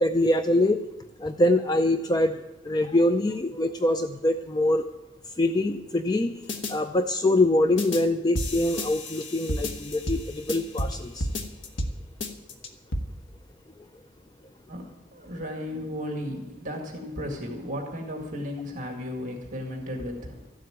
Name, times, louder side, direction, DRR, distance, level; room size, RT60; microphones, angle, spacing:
voice 1, 0.0-0.8 1.2-2.4 2.7-4.8 5.4-6.3 6.7-11.3, left 1 dB, 20° left, 8 dB, 0.4 m, -24 dB
sound 1, 6.5-6.7 7.8-8.0 8.4-11.0 11.2-11.9 12.2-13.0, left 1 dB, 65° left, 1.3 m, -31 dB
voice 2, 14.7-20.4, left 1 dB, 40° right, 1 dB, 2.0 m, -35 dB
14.0 x 7.7 x 9.2 m, 1.0 s
head